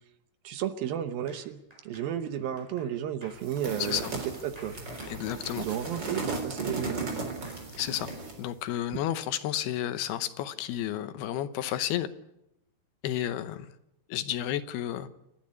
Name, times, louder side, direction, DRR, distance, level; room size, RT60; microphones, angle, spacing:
voice 1, 0.4-4.8 5.6-7.2, right 10 dB, 70° right, 10 dB, 2.5 m, -33 dB
sound 1, 1.3-7.1 7.4-8.9, equal, 10° right, 4.9 m, -54 dB
sound 2, 3.4-8.5, right 3 dB, 25° right, 3.8 m, -36 dB
voice 2, 3.8-4.1 5.1-5.7 7.8-8.1 8.4-12.1 13.0-13.7 14.1-15.1, left 12 dB, 75° left, 11 dB, 2.7 m, -31 dB
28.5 x 10.5 x 9.5 m, 0.87 s
omnidirectional pair, 4.8 m